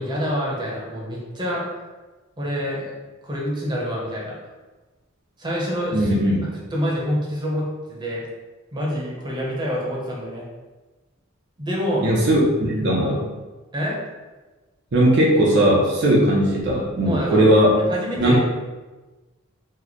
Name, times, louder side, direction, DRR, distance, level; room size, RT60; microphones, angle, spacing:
voice 1, 0.0-1.6 2.4-2.9 3.2-4.3 5.4-6.1 6.7-8.2 8.7-10.4 11.6-12.1 13.7-14.0 17.0-17.5 17.9-18.4, equal, 20° right, -4 dB, 0.8 m, -26 dB
voice 2, 5.9-6.4 12.0-13.2 14.9-17.8 18.2-18.4, right 1 dB, 55° right, -3 dB, 0.6 m, -18 dB
3.0 x 2.1 x 4.0 m, 1.2 s
head